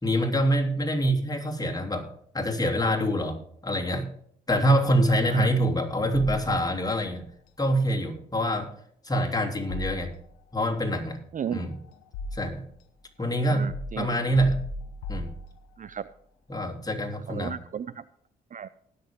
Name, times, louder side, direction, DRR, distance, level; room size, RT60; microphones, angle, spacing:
voice 1, 0.0-2.1 2.3-4.1 4.5-7.2 7.6-8.7 9.0-10.1 10.5-11.2 11.5-11.7 12.3-12.6 13.2-14.6 15.1-15.3 16.5-17.5, equal, 20° left, 0 dB, 3.1 m, -25 dB
voice 2, 5.1-5.5 11.3-11.6 13.2-14.2 15.8-16.1 17.3-18.0 18.5-18.7, right 8 dB, 40° right, 17 dB, 0.5 m, -35 dB
sound 1, 6.1-7.0 9.7-10.6 11.5-12.8 13.7-15.9, left 2 dB, 80° left, 1.2 m, -37 dB
20.0 x 6.7 x 3.7 m, 0.66 s
hypercardioid pair, 50°, 21 cm